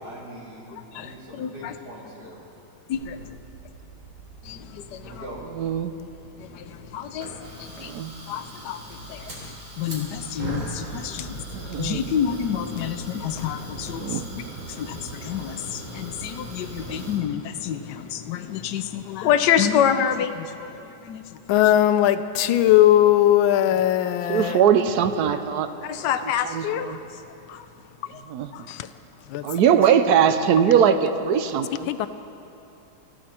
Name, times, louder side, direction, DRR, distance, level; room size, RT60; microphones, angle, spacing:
voice 1, 0.0-2.4 5.0-5.4 19.5-19.8 25.8-26.1, equal, 50° right, -6 dB, 4.1 m, -42 dB
voice 2, 1.3-1.7 2.9-3.2 4.4-5.3 6.4-7.3 7.6-7.9 8.3-9.3 9.8-11.4 11.8-14.4 14.7-21.2 25.8-27.0 27.5-27.6 28.5-28.7, left 9 dB, 65° left, 9 dB, 1.2 m, -28 dB
Fire, 2.9-17.2, right 2 dB, 90° right, 4.3 m, -39 dB
voice 3, 5.5-5.9 7.8-8.1 11.5-12.1 14.0-14.2 16.9-17.1 24.3-25.7 26.4-27.0 28.3-28.5 29.4-31.9, right 8 dB, 65° right, 9 dB, 1.0 m, -21 dB
voice 4, 21.5-24.6 28.7-28.9 29.3-29.5 31.9-32.1, left 12 dB, 85° left, 12 dB, 1.4 m, -19 dB
23.5 x 14.0 x 4.4 m, 2.7 s
omnidirectional pair, 2.2 m